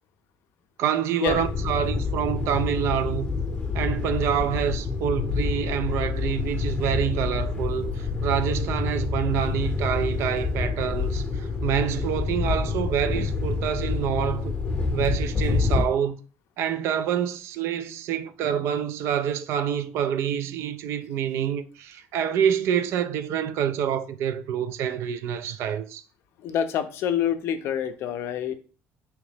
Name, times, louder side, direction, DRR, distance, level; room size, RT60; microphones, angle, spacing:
voice 1, 0.8-3.4 3.7-14.6 14.9-16.2 16.6-26.0, right 9 dB, 70° right, 0.4 m, -27 dB
sound 1, 1.3-15.8, left 4 dB, 25° left, 0.7 m, -27 dB
voice 2, 26.4-28.5, left 9 dB, 65° left, 0.4 m, -26 dB
3.7 x 3.0 x 3.3 m
cardioid pair, 155°, 5 cm